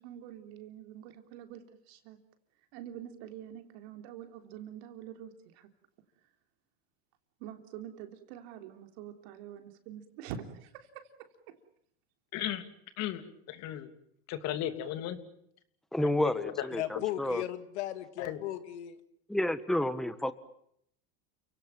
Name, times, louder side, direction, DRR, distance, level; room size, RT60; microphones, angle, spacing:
voice 1, 0.0-2.2 2.7-5.7 7.4-11.6, right 10 dB, 65° right, 7 dB, 3.6 m, -46 dB
voice 2, 12.3-12.6 13.0-13.2 13.5-13.9 14.3-15.2 16.0-16.6 16.9-17.0 18.2-18.4, left 12 dB, 50° left, 9 dB, 3.0 m, -35 dB
voice 3, 15.9-17.4 19.3-20.3, left 1 dB, ahead, 12 dB, 1.4 m, -30 dB
voice 4, 16.8-19.0, left 13 dB, 85° left, 11 dB, 2.3 m, -36 dB
30.0 x 17.5 x 9.0 m, 0.71 s
supercardioid pair, 115°, 33 cm